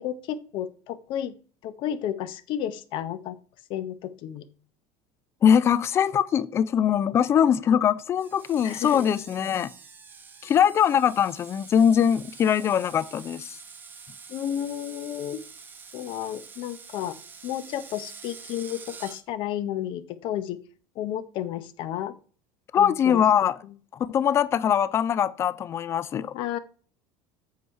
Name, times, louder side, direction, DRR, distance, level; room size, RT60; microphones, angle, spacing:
voice 1, 0.0-1.3 1.6-3.4 3.7-4.4 8.6-9.1 14.3-15.4 15.9-17.1 17.4-20.6 21.0-22.1 22.7-23.2 26.3-26.6, left 11 dB, 50° left, 0.7 m, -32 dB
voice 2, 5.4-9.7 10.4-13.6 22.7-23.6 23.9-26.3, left 8 dB, 25° left, 0.3 m, -22 dB
Screech, 8.2-19.2, right 5 dB, 15° right, 0.7 m, -46 dB
8.1 x 4.7 x 5.5 m
cardioid pair, 160°, 11 cm